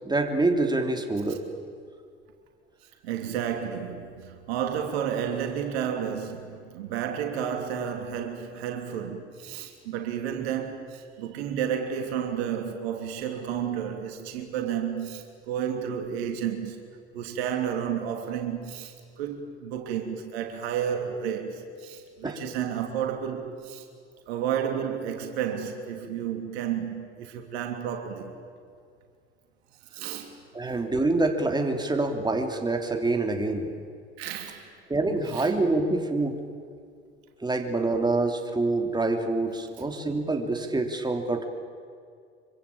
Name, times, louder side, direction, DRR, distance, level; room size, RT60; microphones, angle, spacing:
voice 1, 0.0-1.4 22.2-22.4 30.5-33.7 34.9-36.4 37.4-41.4, right 2 dB, 15° right, 3.4 m, -26 dB
voice 2, 3.0-16.8 17.1-23.9 24.3-28.4 29.9-30.4 30.7-30.8 34.2-34.7 35.3-35.5, right 8 dB, 70° right, 3.1 m, -31 dB
26.0 x 24.5 x 8.8 m
figure-of-eight pair, 65°, 33 cm